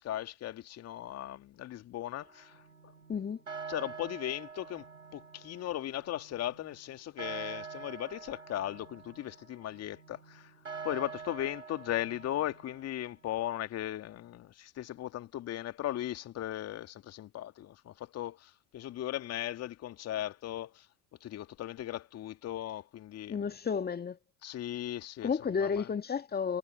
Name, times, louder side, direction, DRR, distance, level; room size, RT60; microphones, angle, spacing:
voice 1, 0.0-2.9 3.7-4.9 5.1-10.5 10.8-20.9 21.2-23.6 24.4-25.9, left 13 dB, 40° left, 2.2 m, -37 dB
sound 1, 2.2-13.3, right 5 dB, 85° right, 4.9 m, -47 dB
voice 2, 3.1-3.4 23.3-24.2 25.2-26.6, left 6 dB, 25° left, 2.3 m, -32 dB
figure-of-eight pair, 65°, 37 cm